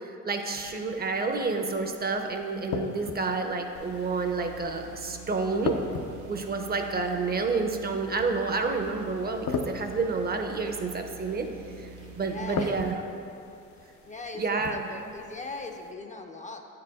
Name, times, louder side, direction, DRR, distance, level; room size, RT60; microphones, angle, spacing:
voice 1, 0.2-5.8 6.3-11.5 12.1-12.9 14.4-14.9, right 4 dB, 30° right, 5 dB, 0.6 m, -29 dB
sound 1, 0.5-15.9, left 4 dB, 70° left, 0.6 m, -40 dB
sound 2, 3.8-12.9, right 4 dB, 75° right, 0.7 m, -46 dB
voice 2, 12.2-12.8 14.1-16.6, left 3 dB, 25° left, 4 dB, 0.5 m, -39 dB
8.9 x 4.9 x 3.5 m, 2.6 s
cardioid pair, 90°, 30 cm